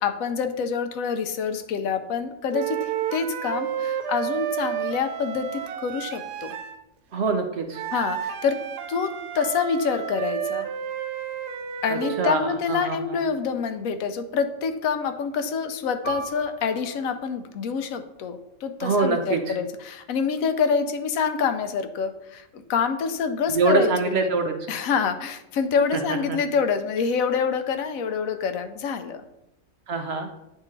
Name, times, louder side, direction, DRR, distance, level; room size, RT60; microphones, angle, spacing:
voice 1, 0.0-6.5 7.9-8.6 8.9-10.7 11.8-24.4 24.7-29.2, left 6 dB, 70° left, 9 dB, 0.9 m, -26 dB
sound 1, 2.5-6.8 7.7-12.4, right 10 dB, 90° right, 1.1 m, -31 dB
voice 2, 7.1-7.8 11.9-13.2 18.8-19.5 23.5-24.5 25.9-26.4 29.9-30.3, right 3 dB, 65° right, 5 dB, 0.6 m, -25 dB
Piano, 16.0-21.1 21.4-21.6 22.4-22.7, right 6 dB, 35° left, 1.2 m, -42 dB
9.6 x 3.6 x 3.2 m, 0.90 s
omnidirectional pair, 1.7 m